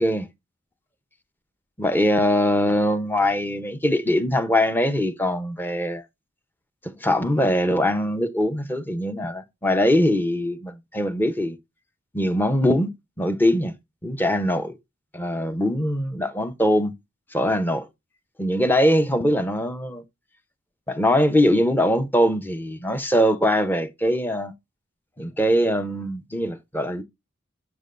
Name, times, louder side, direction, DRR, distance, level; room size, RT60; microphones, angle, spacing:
voice 1, 1.8-6.0 6.8-11.6 12.1-12.9 13.2-13.7 14.0-14.8 15.1-16.9 17.3-17.9 18.4-20.0 20.9-24.5 25.2-27.0, equal, 10° left, 0.8 m, -22 dB
7.3 x 6.6 x 2.5 m
head